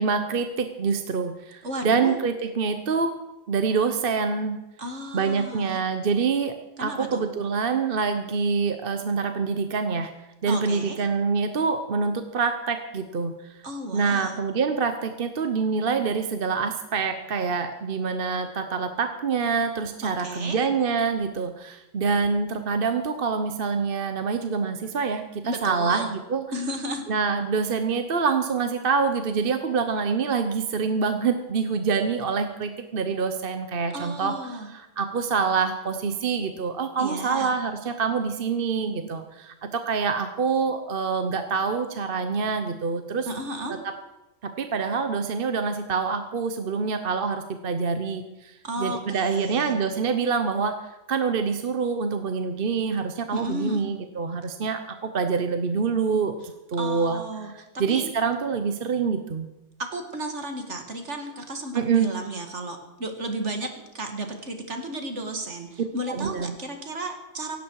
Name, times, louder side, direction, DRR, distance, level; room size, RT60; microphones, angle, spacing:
voice 1, 0.0-3.1 3.5-4.6 5.1-10.1 10.4-13.6 13.9-26.4 27.1-34.3 34.7-43.3 43.8-43.9 44.4-50.7 51.1-57.2 57.8-59.5 61.7-62.1 66.1-66.6, right 5 dB, 50° right, 7 dB, 1.1 m, -26 dB
voice 2, 1.6-2.1 4.8-5.8 6.8-7.2 10.4-11.0 13.6-14.4 20.0-20.6 25.4-26.1 26.5-27.0 33.9-34.7 37.0-37.5 43.2-43.8 48.6-49.8 53.3-53.9 56.8-58.1 59.9-67.6, right 1 dB, 65° right, 4 dB, 2.4 m, -33 dB
17.0 x 17.0 x 4.7 m, 0.99 s
omnidirectional pair, 1.3 m